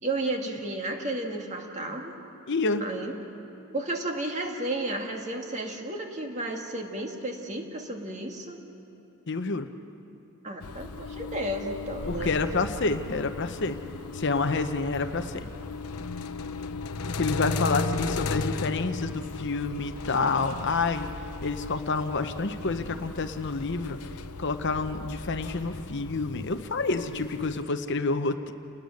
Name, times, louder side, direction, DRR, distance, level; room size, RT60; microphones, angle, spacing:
voice 1, 0.0-2.1 2.8-3.1 3.7-8.6 10.4-12.3, right 1 dB, 30° right, 2 dB, 2.0 m, -32 dB
voice 2, 2.5-2.8 9.3-9.7 12.1-13.8 14.1-15.5 17.2-21.1 21.4-24.0 24.4-28.5, left 3 dB, 55° left, 9 dB, 0.8 m, -28 dB
sound 1, 10.6-27.6, left 3 dB, 85° left, 0.8 m, -36 dB
29.0 x 20.0 x 6.5 m, 2.8 s
head